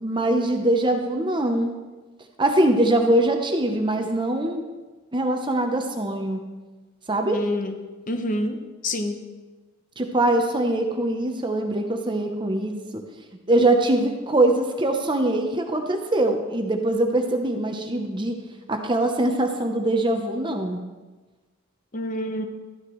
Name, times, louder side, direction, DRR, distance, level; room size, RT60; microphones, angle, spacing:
voice 1, 0.0-1.8 2.4-4.6 5.1-6.4 7.1-7.4 10.0-13.0 13.5-18.4 18.7-20.8, right 1 dB, 20° right, 4 dB, 0.7 m, -22 dB
voice 2, 7.3-7.7 8.1-8.6 8.8-9.2 21.9-22.4, left 1 dB, 35° left, 6 dB, 0.8 m, -27 dB
13.0 x 9.5 x 3.1 m, 1.3 s
head